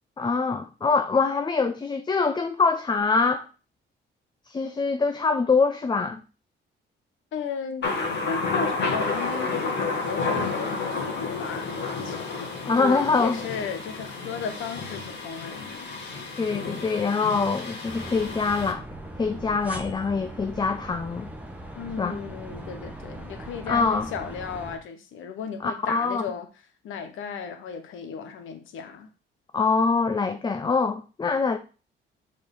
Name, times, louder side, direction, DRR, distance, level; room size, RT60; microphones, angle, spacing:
voice 1, 0.2-3.5 4.5-6.2 12.7-13.4 16.4-18.8 19.2-21.3 22.0-22.2 23.7-24.1 25.6-26.2 29.5-31.6, left 4 dB, 20° left, 0.5 m, -24 dB
voice 2, 7.3-7.9 8.3-11.7 12.0-12.5 12.8-15.9 21.8-26.5 26.8-29.1, left 6 dB, 80° left, 1.1 m, -35 dB
Thunder, 7.8-18.7, left 4 dB, 65° left, 2.0 m, -31 dB
sound 1, 17.9-24.8, right 1 dB, 5° right, 1.1 m, -40 dB
6.3 x 4.4 x 3.8 m
cardioid pair, 90°, 20 cm